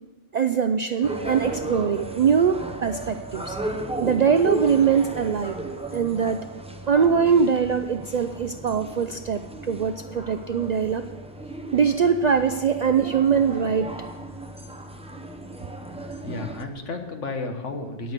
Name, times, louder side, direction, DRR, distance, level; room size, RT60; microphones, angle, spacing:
voice 1, 0.3-3.6 4.0-5.6 5.9-6.4 6.9-11.0 11.7-13.9, right 6 dB, 85° right, 8 dB, 0.3 m, -22 dB
sound 1, 1.0-14.1, right 4 dB, 45° left, 3.9 m, -45 dB
sound 2, 1.0-16.6, right 1 dB, 5° right, 0.6 m, -35 dB
voice 2, 16.1-18.1, left 3 dB, 75° left, 5 dB, 1.6 m, -33 dB
9.5 x 8.6 x 6.7 m, 1.1 s
omnidirectional pair, 1.3 m